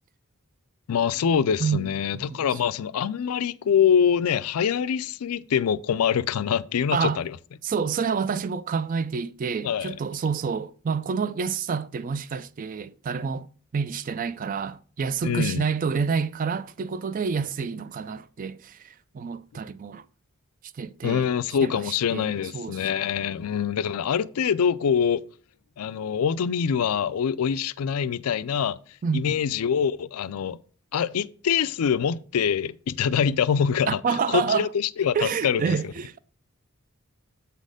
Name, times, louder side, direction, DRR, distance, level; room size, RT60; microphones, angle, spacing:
voice 1, 0.9-7.4 9.6-10.0 15.2-15.6 21.0-25.2 25.8-28.8 29.1-30.6 30.9-34.0 34.3-35.8, left 7 dB, 85° left, 0.4 m, -24 dB
voice 2, 7.6-13.5 13.7-20.0 20.8-21.3 21.6-22.8 29.0-29.4 33.9-34.7 35.1-36.2, right 6 dB, 35° right, 0.3 m, -28 dB
8.1 x 4.2 x 4.9 m
head